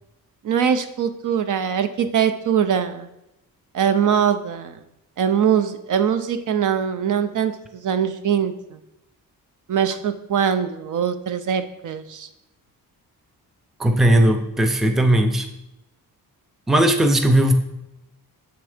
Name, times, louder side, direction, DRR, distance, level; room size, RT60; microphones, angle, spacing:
voice 1, 0.4-3.1 3.7-4.7 5.2-7.5 7.8-8.5 9.7-12.3, right 8 dB, 55° right, 10 dB, 0.5 m, -22 dB
voice 2, 13.8-15.5 16.7-17.5, right 1 dB, ahead, 6 dB, 0.4 m, -17 dB
7.3 x 3.4 x 4.9 m, 0.87 s
cardioid pair, 120°, 37 cm